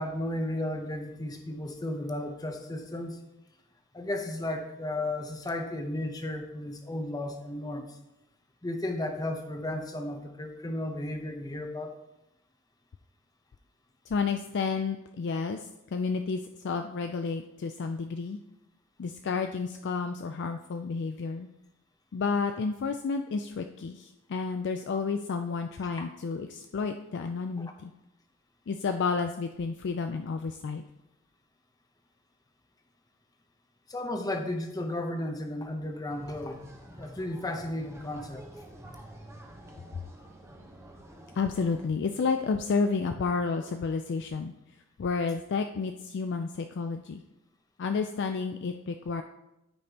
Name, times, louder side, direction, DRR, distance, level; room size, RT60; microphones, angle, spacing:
voice 1, 0.0-3.2 3.9-8.0 8.6-12.0 26.0-26.1 27.6-27.7 33.9-36.7 37.0-38.5, left 1 dB, 15° left, 4 dB, 0.7 m, -34 dB
voice 2, 14.1-18.4 19.0-21.5 22.1-27.9 28.7-30.8 41.4-44.5 45.0-47.2 47.8-49.2, left 4 dB, 50° left, 6 dB, 0.4 m, -31 dB
sound 1, 36.1-41.9, right 1 dB, 10° right, 0.9 m, -48 dB
13.0 x 5.3 x 2.9 m, 0.91 s
head